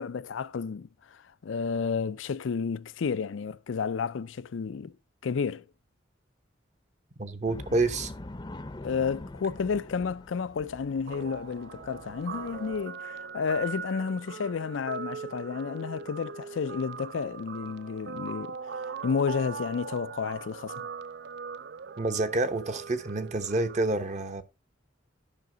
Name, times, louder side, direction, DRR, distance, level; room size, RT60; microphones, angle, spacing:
voice 1, 0.0-4.9 5.2-5.7 8.8-18.6 19.0-20.9, left 5 dB, 90° left, 0.4 m, -31 dB
voice 2, 7.2-8.1 22.0-24.4, right 2 dB, 40° right, 0.9 m, -28 dB
sound 1, 7.5-12.8, left 1 dB, 25° left, 0.6 m, -44 dB
Guitar, 11.1-23.8, right 6 dB, 60° right, 0.4 m, -41 dB
12.0 x 5.8 x 3.8 m
head